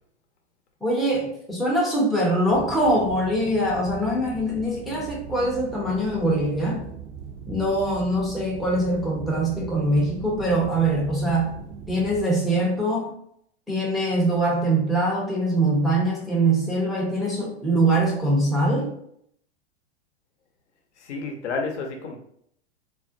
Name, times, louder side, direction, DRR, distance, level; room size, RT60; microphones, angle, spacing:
voice 1, 0.8-6.9 7.5-11.6 11.9-13.1 13.7-18.9, right 1 dB, ahead, -5 dB, 0.5 m, -23 dB
sound 1, 2.5-12.2, right 6 dB, 50° right, 0.5 m, -39 dB
voice 2, 21.0-22.2, left 4 dB, 70° left, 3 dB, 0.7 m, -30 dB
2.4 x 2.0 x 2.5 m, 0.69 s
hypercardioid pair, 115°, 35 cm